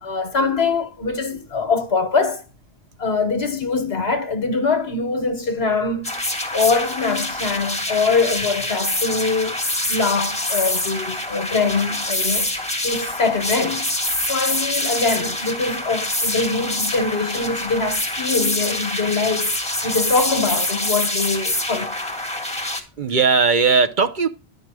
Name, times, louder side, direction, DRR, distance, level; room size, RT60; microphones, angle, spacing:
voice 1, 0.0-2.4 3.0-6.1 6.5-9.6 9.9-12.5 12.8-13.9 14.3-19.5 19.8-21.9, left 4 dB, 65° left, 1.2 m, -23 dB
sound 1, 6.0-22.8, left 1 dB, 5° left, 1.6 m, -25 dB
voice 2, 23.0-24.3, right 5 dB, 50° right, 0.8 m, -18 dB
10.5 x 5.3 x 4.8 m
omnidirectional pair, 1.1 m